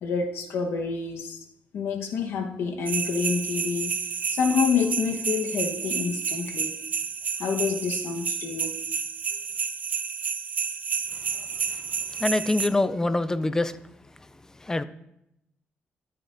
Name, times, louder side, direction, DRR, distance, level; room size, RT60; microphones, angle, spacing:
voice 1, 0.0-1.4 1.7-3.9 4.3-6.7 7.4-8.8, left 5 dB, 85° left, 3 dB, 1.3 m, -27 dB
sound 1, 2.9-12.7, right 6 dB, 40° right, 0.5 m, -30 dB
voice 2, 12.2-13.7 14.6-14.8, left 2 dB, 15° left, 13 dB, 0.5 m, -24 dB
11.5 x 9.8 x 2.7 m, 0.82 s
cardioid pair, 135°, 4 cm